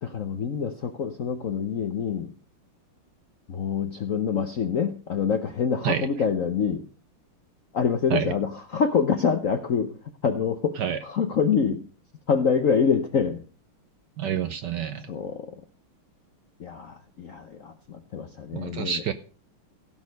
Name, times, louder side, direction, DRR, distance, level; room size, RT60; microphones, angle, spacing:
voice 1, 0.0-2.3 3.5-6.8 7.7-10.0 10.2-11.8 12.3-13.4 15.1-15.6 16.6-19.0, left 6 dB, 60° left, 7 dB, 0.8 m, -26 dB
voice 2, 14.2-15.1 18.5-19.1, right 8 dB, 70° right, 11 dB, 1.1 m, -27 dB
16.5 x 6.4 x 5.3 m, 0.39 s
omnidirectional pair, 2.4 m